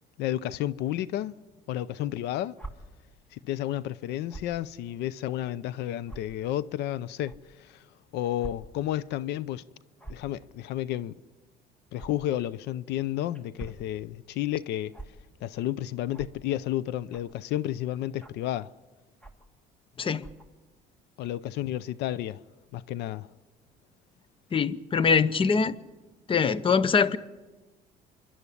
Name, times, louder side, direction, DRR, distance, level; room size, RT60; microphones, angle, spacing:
voice 1, 0.2-1.3 1.7-2.6 3.3-7.8 8.1-9.6 10.1-11.1 11.9-14.9 15.4-18.7 21.2-22.4 22.7-23.3, left 13 dB, 80° left, 0.6 m, -31 dB
sound 1, 2.6-2.7 4.3-4.5 5.3-5.4 6.1-6.2 7.2-7.4 8.4-8.5 8.9-9.0 10.0-10.3 12.0-12.1 13.3-13.8 14.9-15.1 16.1-16.3 17.1-17.4 18.2-18.5 19.2-19.5 20.2-20.5, right 2 dB, 5° left, 1.6 m, -42 dB
voice 2, 24.5-25.8 26.3-27.2, left 5 dB, 30° left, 0.8 m, -23 dB
26.5 x 11.5 x 9.9 m
cardioid pair, 110°, 17 cm